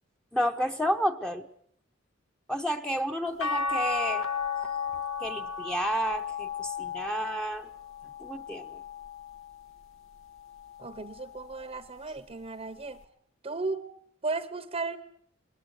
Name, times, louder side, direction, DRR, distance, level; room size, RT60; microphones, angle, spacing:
voice 1, 0.3-1.5 2.5-4.3 5.2-7.7 8.2-8.8, equal, 5° left, 4 dB, 0.8 m, -31 dB
sound 1, 3.4-9.7 10.3-11.6 13.0-13.1, left 5 dB, 85° left, 1.8 m, -34 dB
voice 2, 10.8-13.0 13.4-13.9 14.2-15.0, right 3 dB, 30° right, 14 dB, 0.9 m, -35 dB
21.0 x 19.5 x 8.1 m, 0.66 s
head